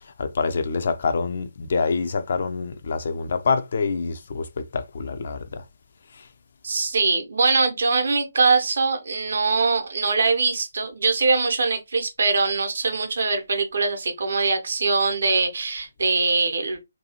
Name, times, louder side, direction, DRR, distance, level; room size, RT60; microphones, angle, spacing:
voice 1, 0.2-5.6, left 4 dB, 50° left, 0.3 m, -26 dB
voice 2, 6.6-16.8, right 4 dB, 55° right, 0.7 m, -22 dB
2.6 x 2.3 x 2.7 m
figure-of-eight pair, 140°, 0 cm